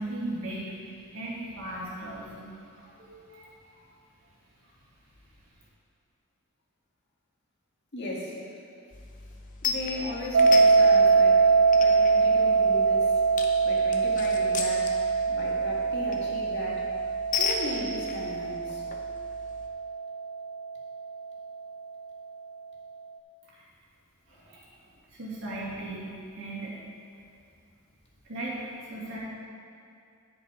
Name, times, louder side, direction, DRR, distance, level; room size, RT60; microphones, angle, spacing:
voice 1, 0.0-3.5 23.6-23.7 24.3-24.6 25.1-26.7 28.3-29.2, right 1 dB, 70° right, -8 dB, 2.5 m, -37 dB
voice 2, 7.9-8.3 9.6-13.2 13.6-14.9 15.3-16.9 17.4-18.8, left 1 dB, 55° left, -4 dB, 1.9 m, -37 dB
sound 1, 8.9-19.7, left 5 dB, 40° left, 0.7 m, -37 dB
sound 2, 10.3-21.3, right 4 dB, 90° right, 0.4 m, -23 dB
10.5 x 6.3 x 4.9 m, 2.4 s
head